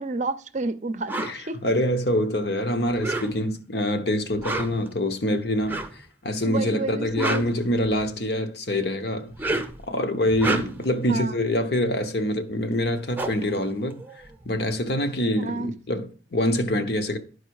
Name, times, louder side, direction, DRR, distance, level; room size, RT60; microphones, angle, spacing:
voice 1, 0.0-1.6 6.5-7.5 11.1-11.3 15.4-15.7, right 2 dB, 40° right, 0.6 m, -29 dB
sound 1, 1.1-1.4 2.9-3.6 4.3-4.9 5.6-6.0 6.9-8.2 9.2-9.8 10.3-10.9 12.5-12.6 12.8-14.5, right 2 dB, 10° right, 0.8 m, -30 dB
voice 2, 1.2-9.3 9.9-17.2, left 1 dB, 60° left, 1.0 m, -25 dB
12.0 x 4.8 x 4.7 m
head